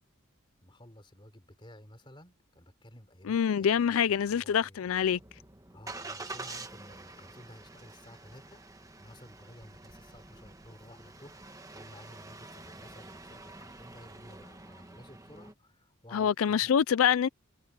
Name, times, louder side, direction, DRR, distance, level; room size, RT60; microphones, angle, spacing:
voice 1, 0.6-4.8 5.7-8.6 9.0-16.7, left 1 dB, 25° left, 3.8 m, -54 dB
voice 2, 3.3-5.2 16.1-17.3, left 8 dB, 75° left, 0.4 m, -25 dB
Engine starting, 4.8-15.5, right 3 dB, 15° right, 1.3 m, -47 dB
head